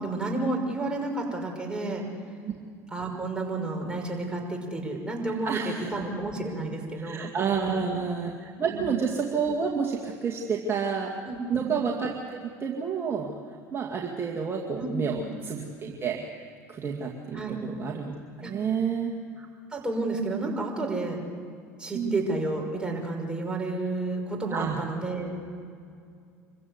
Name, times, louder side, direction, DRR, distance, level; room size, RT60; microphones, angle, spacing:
voice 1, 0.0-2.0 2.9-8.0 8.7-8.9 11.2-11.7 14.8-15.2 17.3-17.6 18.4-18.5 19.4-19.5 19.7-21.2 21.8-25.4, right 2 dB, 10° right, 0 dB, 5.7 m, -31 dB
voice 2, 5.4-5.9 6.9-11.1 11.5-16.2 16.7-19.1 21.9-22.2 24.5-24.8, right 6 dB, 35° right, -1 dB, 2.2 m, -30 dB
26.0 x 15.5 x 8.2 m, 2.3 s
hypercardioid pair, 75°, 8 cm